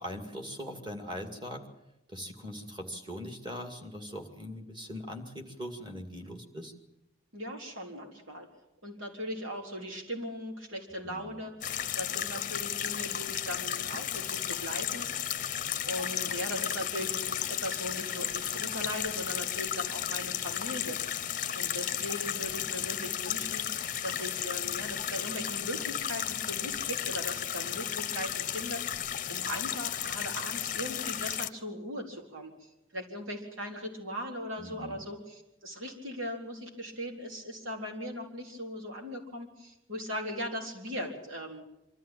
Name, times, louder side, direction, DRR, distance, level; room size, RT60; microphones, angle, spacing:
voice 1, 0.0-1.6 2.1-6.7 11.0-11.4 34.6-35.0, equal, 25° right, 4 dB, 2.3 m, -41 dB
voice 2, 7.3-8.5 8.8-15.1 15.8-21.0 21.5-41.7, equal, 85° right, 1 dB, 4.0 m, -39 dB
sound 1, 11.6-31.5, left 10 dB, 40° left, 0.7 m, -34 dB
24.5 x 13.5 x 8.9 m, 0.91 s
head